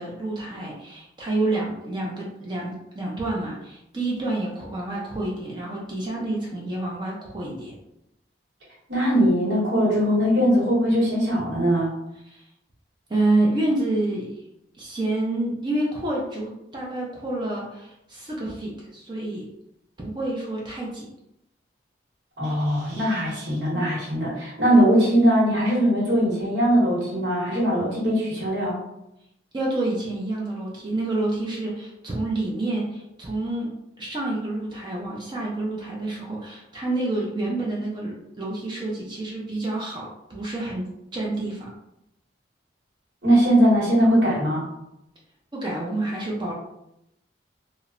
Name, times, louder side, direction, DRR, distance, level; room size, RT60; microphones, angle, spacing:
voice 1, 0.0-7.7 12.2-12.5 13.1-14.3 14.8-19.5 20.0-21.1 29.5-41.7 45.5-46.5, right 2 dB, 25° right, -3 dB, 0.4 m, -28 dB
voice 2, 8.9-11.9 22.4-28.8 43.2-44.7, equal, 75° right, -5 dB, 1.0 m, -20 dB
2.8 x 2.0 x 2.4 m, 0.83 s
head